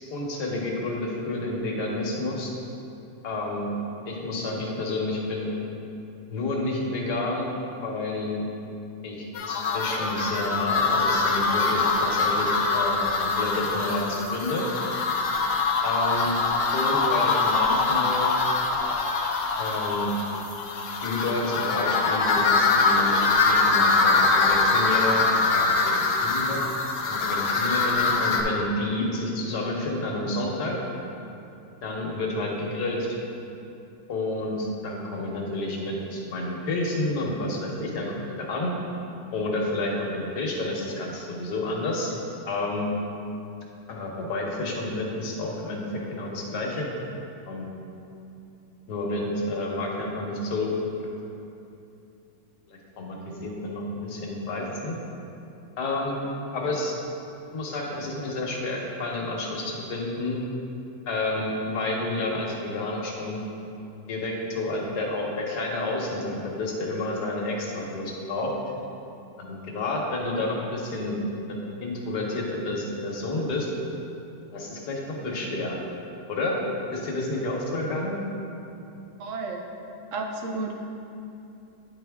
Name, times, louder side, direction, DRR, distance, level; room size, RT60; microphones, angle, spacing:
voice 1, 0.1-2.5 3.2-3.7 4.0-5.5 6.3-7.5 7.8-8.4 9.0-14.6 15.8-16.3 16.7-18.3 19.6-20.1 21.0-23.1 23.4-25.2 25.5-26.6 27.1-30.8 31.8-33.1 34.1-38.7 39.3-42.1 42.5-42.9 43.9-46.9 47.5-47.6 48.9-50.7 52.7-54.9 55.8-56.1 56.5-56.9 57.5-60.4 61.1-63.4 64.1-68.5 69.4-71.2 71.4-73.7 74.5-75.7 76.3-76.6 76.9-78.2, left 2 dB, 85° left, -1 dB, 1.5 m, -30 dB
sound 1, 9.3-28.4, left 3 dB, 65° left, 0.9 m, -23 dB
voice 2, 79.2-79.7 80.1-80.8, right 3 dB, 65° right, 2 dB, 0.9 m, -32 dB
9.1 x 4.3 x 3.5 m, 2.7 s
omnidirectional pair, 1.7 m